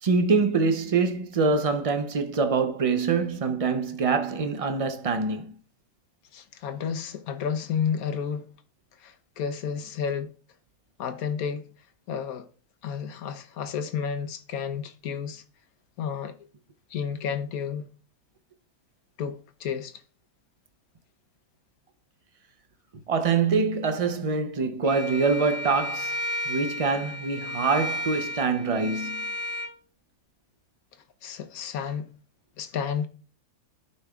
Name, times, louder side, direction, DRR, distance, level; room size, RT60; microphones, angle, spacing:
voice 1, 0.0-5.5 23.1-26.2 26.5-29.2, right 4 dB, 40° right, 0.5 m, -25 dB
voice 2, 6.3-8.5 9.0-10.3 11.0-11.7 12.1-12.5 12.8-15.4 16.0-16.4 16.9-17.9 19.2-20.0 31.2-32.1 32.6-33.1, left 7 dB, 75° left, 1.2 m, -31 dB
Bowed string instrument, 24.8-29.7, left 1 dB, 10° left, 1.1 m, -33 dB
15.0 x 5.4 x 2.4 m
omnidirectional pair, 1.6 m